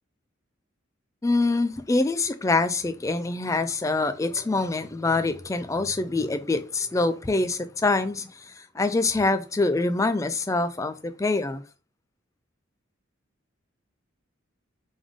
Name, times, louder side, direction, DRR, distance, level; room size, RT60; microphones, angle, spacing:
voice 1, 1.2-8.3 8.8-11.6, left 3 dB, 15° left, 0.3 m, -25 dB
3.5 x 3.5 x 3.5 m
head